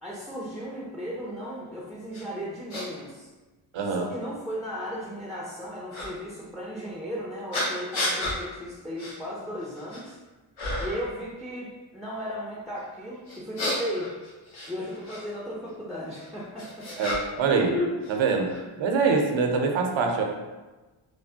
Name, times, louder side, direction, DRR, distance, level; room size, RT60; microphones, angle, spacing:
voice 1, 0.0-3.3 3.8-10.2 10.8-14.1 14.7-16.9, equal, ahead, -5 dB, 0.3 m, -36 dB
sound 1, 2.1-2.2 2.7-2.9 3.7-3.8 5.9-6.1 7.5-8.4 9.0-9.2 9.6-10.1 10.6-11.1 13.3-15.2 16.2-17.5 17.7-18.6, left 2 dB, 80° left, 1.1 m, -31 dB
voice 2, 3.7-4.0 17.0-17.8 18.1-18.5 18.8-20.2, right 5 dB, 70° right, 2 dB, 0.6 m, -24 dB
3.2 x 2.0 x 2.7 m, 1.2 s
cardioid pair, 80°, 48 cm